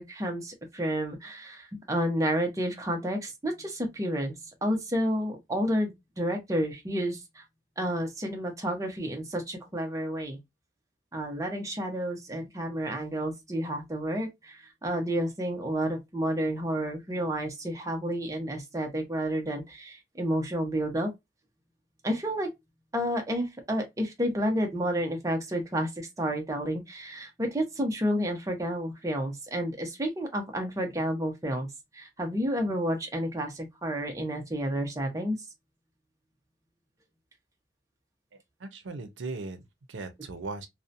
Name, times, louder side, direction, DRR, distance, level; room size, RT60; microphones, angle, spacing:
voice 1, 0.0-4.3 4.6-7.4 7.8-10.4 11.1-21.1 22.0-22.5 22.9-31.7 31.9-35.4 40.2-40.3, equal, 20° right, 0.6 m, -30 dB
voice 2, 38.3-40.7, right 3 dB, 85° right, 0.6 m, -39 dB
2.7 x 2.1 x 2.4 m
head